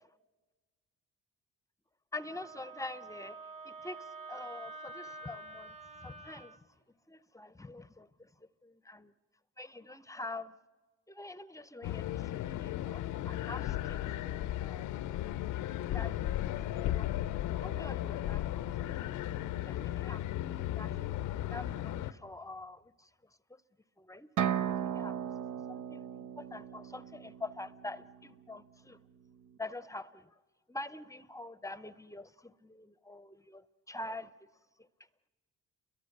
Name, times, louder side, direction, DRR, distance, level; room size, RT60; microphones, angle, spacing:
voice 1, 2.1-5.7 6.0-6.6 7.1-8.3 8.6-9.1 9.6-10.5 11.1-15.2 15.5-16.5 16.7-17.1 17.5-18.4 18.8-23.1 24.0-25.3 25.7-26.0 26.4-29.0 29.6-30.3 30.7-34.3, left 2 dB, 10° left, 0.7 m, -46 dB
Wind instrument woodwind instrument, 2.2-6.6, right 3 dB, 20° right, 1.2 m, -47 dB
sound 1, 11.8-22.1, left 13 dB, 85° left, 0.7 m, -35 dB
sound 2, 24.4-28.1, right 9 dB, 80° right, 0.9 m, -36 dB
30.0 x 22.0 x 6.6 m
cardioid pair, 90°, 30 cm